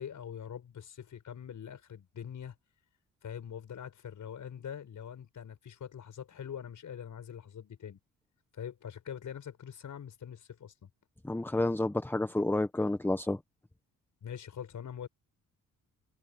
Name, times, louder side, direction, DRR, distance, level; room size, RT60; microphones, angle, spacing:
voice 1, 0.0-2.6 3.2-8.0 8.5-10.9 14.2-15.1, left 8 dB, 60° left, 5.3 m, -43 dB
voice 2, 11.2-13.4, left 2 dB, 5° left, 0.9 m, -30 dB
cardioid pair, 90°, 35 cm